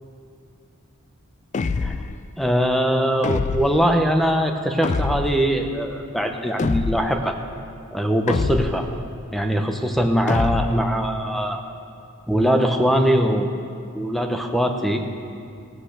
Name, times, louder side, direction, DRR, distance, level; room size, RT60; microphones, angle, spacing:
sound 1, 1.5-2.2 3.2-3.9 4.8-5.5 6.6-7.2 8.3-9.0 10.3-10.9, left 4 dB, 30° left, 0.3 m, -25 dB
voice 1, 2.4-7.3 7.9-8.9 9.3-11.6 12.3-13.5 13.9-15.0, equal, ahead, 4 dB, 0.9 m, -21 dB
17.0 x 8.2 x 6.6 m, 2.5 s
head